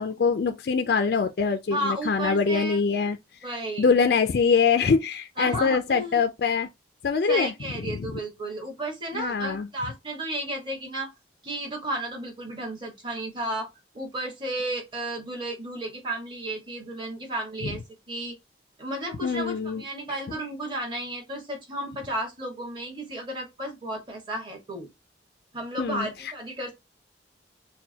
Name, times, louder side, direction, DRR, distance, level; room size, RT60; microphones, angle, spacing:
voice 1, 0.0-3.2 3.8-6.7 7.0-7.5 7.9-8.0 9.1-9.7 17.6-17.7 19.2-19.8 25.8-26.3, left 5 dB, 55° left, 0.4 m, -24 dB
voice 2, 1.7-2.8 3.4-3.9 5.4-6.2 7.3-11.1 11.4-13.7 13.9-17.8 18.1-18.4 18.8-24.9 25.5-26.7, right 1 dB, 25° right, 1.6 m, -33 dB
5.9 x 2.2 x 2.8 m
head